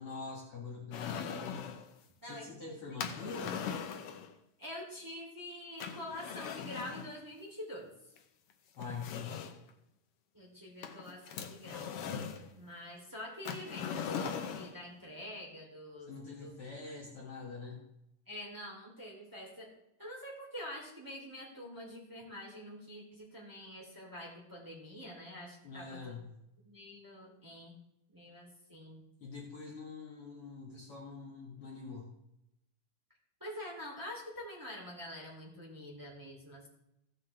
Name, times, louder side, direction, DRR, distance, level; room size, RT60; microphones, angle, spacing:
voice 1, 0.0-1.7 2.2-3.6 8.8-9.4 16.1-17.8 25.6-26.3 29.2-32.1, left 4 dB, 50° left, -2 dB, 2.3 m, -44 dB
sound 1, 0.9-1.9 3.0-4.3 5.8-7.1 8.2-8.3 8.8-9.7 10.8-12.5 13.4-14.8, left 7 dB, 75° left, 1.3 m, -40 dB
voice 2, 2.2-3.0 4.6-7.9 10.3-11.9 12.5-16.1 16.4-16.5 16.8-16.9 18.3-19.7 20.0-26.2 26.6-27.7 28.1-29.0 33.4-36.7, left 1 dB, 5° right, -3 dB, 2.6 m, -46 dB
15.5 x 7.8 x 3.3 m, 0.84 s
omnidirectional pair, 3.6 m